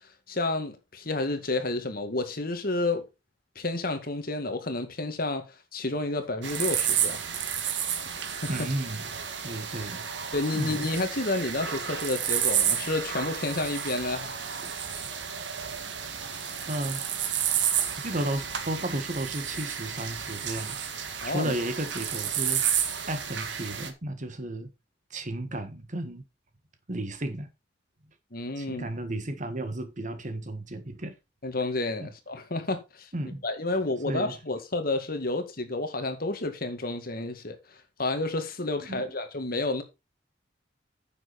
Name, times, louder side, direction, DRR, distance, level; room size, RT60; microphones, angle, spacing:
voice 1, 0.3-3.0 3.6-5.5 5.7-7.2 8.3-8.7 10.3-14.3 21.2-21.5 28.3-28.9 31.4-33.1 33.4-37.6 38.0-39.8, left 2 dB, 50° left, 2.1 m, -30 dB
sound 1, 6.4-23.9, right 8 dB, 70° right, 1.8 m, -31 dB
voice 2, 8.5-9.1 9.4-10.1 10.5-10.9 14.6-14.7 16.6-17.0 18.0-20.8 21.2-22.6 23.1-24.7 25.1-26.2 26.9-27.5 28.6-31.1 32.0-32.1 33.1-33.4 34.0-34.3 38.9-39.0, right 1 dB, 40° right, 1.6 m, -33 dB
9.7 x 7.5 x 4.2 m
head